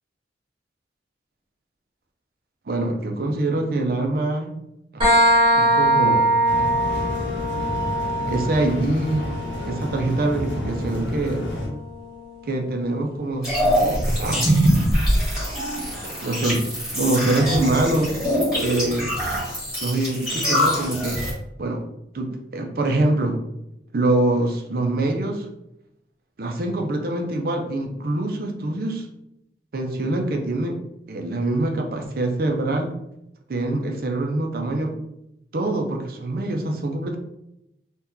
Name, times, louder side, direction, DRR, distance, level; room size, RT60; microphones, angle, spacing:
voice 1, 2.7-4.6 4.9-5.0 5.5-6.7 8.3-9.4 9.7-11.5 12.4-14.6 16.2-18.2 18.6-19.1 19.8-21.2 21.6-21.8 22.1-23.4 23.9-25.5 26.4-29.1 29.7-30.8 31.1-33.0 33.5-35.0 35.5-37.2, right 2 dB, 50° right, 3 dB, 0.5 m, -24 dB
sound 1, 5.0-12.4, right 1 dB, 25° right, 1.3 m, -23 dB
sound 2, 6.5-11.7, left 1 dB, 85° left, 1.1 m, -31 dB
sound 3, 13.4-21.3, equal, 5° right, 1.4 m, -23 dB
2.7 x 2.2 x 3.6 m, 0.83 s
head